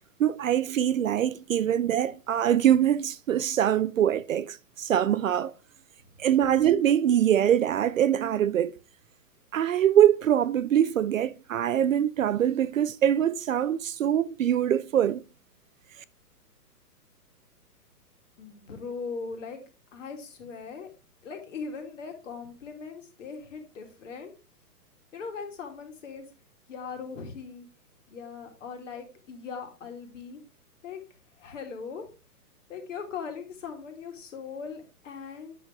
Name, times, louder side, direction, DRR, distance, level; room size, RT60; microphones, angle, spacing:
voice 1, 0.2-5.5 6.2-8.8 9.5-15.2, right 10 dB, 55° right, 0.5 m, -23 dB
voice 2, 18.4-19.6 19.9-20.9 21.2-24.3 25.1-26.2 26.7-27.7 28.1-30.4 30.8-31.0 31.4-32.1 32.7-35.6, left 5 dB, 50° left, 2.5 m, -39 dB
9.2 x 6.3 x 3.4 m
hypercardioid pair, 165°, 47 cm